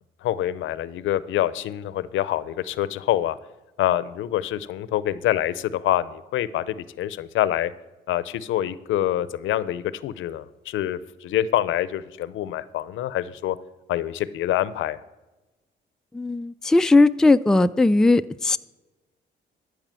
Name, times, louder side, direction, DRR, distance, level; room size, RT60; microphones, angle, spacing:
voice 1, 0.2-3.4 3.8-7.7 8.1-13.6 13.9-15.0, left 12 dB, 80° left, 16 dB, 0.6 m, -26 dB
voice 2, 16.1-18.6, left 2 dB, 5° left, 10 dB, 0.3 m, -18 dB
14.5 x 5.0 x 7.5 m, 1.1 s
cardioid pair, 90°, 20 cm